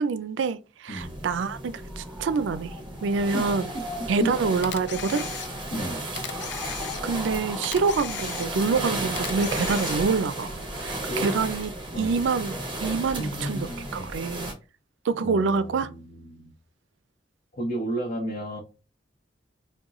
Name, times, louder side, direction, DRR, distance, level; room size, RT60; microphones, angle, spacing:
voice 1, 0.0-2.8 3.0-3.7 4.1-5.3 7.0-11.7 12.0-12.6 12.8-13.7 13.9-14.5 15.0-15.9, right 4 dB, 85° right, 0.4 m, -26 dB
sound 1, 1.0-14.5, right 1 dB, 25° right, 1.3 m, -34 dB
sound 2, 1.7-11.5, left 1 dB, 5° right, 0.5 m, -42 dB
Camera, 4.6-5.8 6.2-7.3 7.6-8.8 9.2-10.2, left 10 dB, 70° left, 0.4 m, -37 dB
voice 2, 13.1-14.1 15.2-16.5 17.5-18.6, equal, 50° left, 0.8 m, -32 dB
6.1 x 2.2 x 3.0 m
head